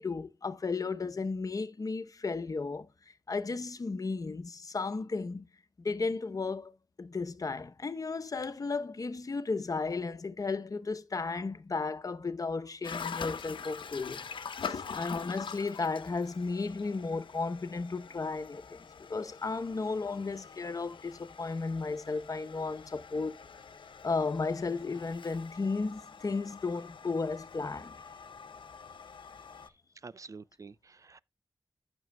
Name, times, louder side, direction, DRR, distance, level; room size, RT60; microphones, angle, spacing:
voice 1, 0.0-5.5 5.8-14.2 14.6-18.8 19.1-23.4 24.0-28.0, left 4 dB, 45° left, 0.8 m, -34 dB
sound 1, 12.8-29.7, left 6 dB, 85° left, 0.8 m, -45 dB
voice 2, 30.0-31.2, right 4 dB, 40° right, 0.4 m, -48 dB
15.0 x 6.1 x 2.2 m
wide cardioid pair, 120°, 8 cm